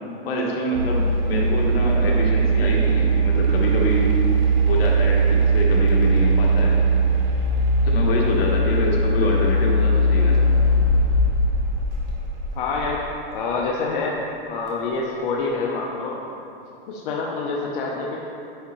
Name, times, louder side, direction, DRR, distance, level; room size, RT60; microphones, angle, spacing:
voice 1, 0.2-4.1 4.6-6.8 7.8-10.5, left 1 dB, 80° left, -2 dB, 1.3 m, -26 dB
sound 1, 0.7-13.0, right 2 dB, 65° right, 1.5 m, -19 dB
voice 2, 12.5-13.1 13.3-16.2 16.9-18.2, left 3 dB, 60° left, -2 dB, 0.7 m, -26 dB
9.8 x 3.8 x 3.0 m, 2.8 s
supercardioid pair, 145°, 30 cm